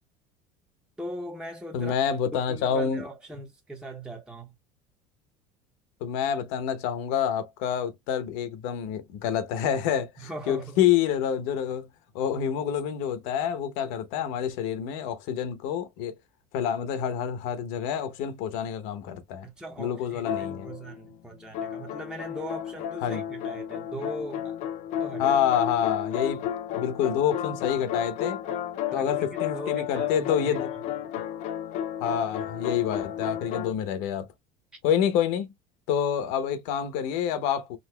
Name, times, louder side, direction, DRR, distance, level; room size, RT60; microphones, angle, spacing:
voice 1, 1.0-1.9 2.3-4.5 10.2-10.8 19.4-24.6 25.0-25.4 28.9-30.7, equal, 5° right, 0.7 m, -40 dB
voice 2, 1.7-3.0 6.0-11.9 12.1-16.1 16.5-19.5 19.8-20.7 23.0-23.2 25.2-26.4 26.8-28.4 28.9-30.7 32.0-34.3 34.8-35.5 35.9-37.8, left 9 dB, 75° left, 0.8 m, -27 dB
sound 1, 20.3-21.1 21.5-33.7, left 9 dB, 55° left, 0.5 m, -32 dB
3.9 x 2.4 x 2.2 m
supercardioid pair, 125°, 15 cm